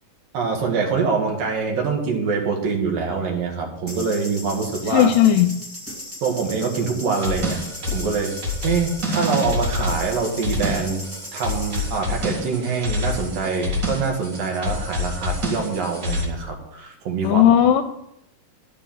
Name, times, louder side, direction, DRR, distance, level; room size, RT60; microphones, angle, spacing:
voice 1, 0.3-5.1 6.2-7.6 7.9-8.4 8.6-11.0 11.3-17.6, right 5 dB, 80° right, 1 dB, 3.7 m, -24 dB
sound 1, 3.9-12.0, left 1 dB, 5° right, 1.4 m, -37 dB
voice 2, 4.9-5.6 17.2-17.8, left 10 dB, 80° left, 8 dB, 2.2 m, -15 dB
sound 2, 7.1-16.3, left 2 dB, 35° right, 2.2 m, -27 dB
11.5 x 7.0 x 5.6 m, 0.79 s
omnidirectional pair, 3.9 m